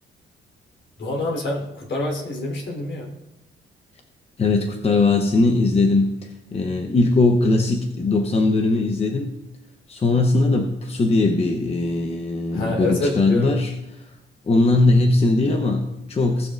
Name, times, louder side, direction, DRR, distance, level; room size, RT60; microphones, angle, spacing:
voice 1, 1.0-3.1 6.6-6.7 12.5-13.6, left 2 dB, 60° left, -1 dB, 3.6 m, -27 dB
voice 2, 4.4-9.4 9.9-13.7 14.0-14.1 14.5-16.5, left 2 dB, 30° left, 4 dB, 0.9 m, -20 dB
18.5 x 6.4 x 2.5 m, 0.95 s
cardioid pair, 90°, 20 cm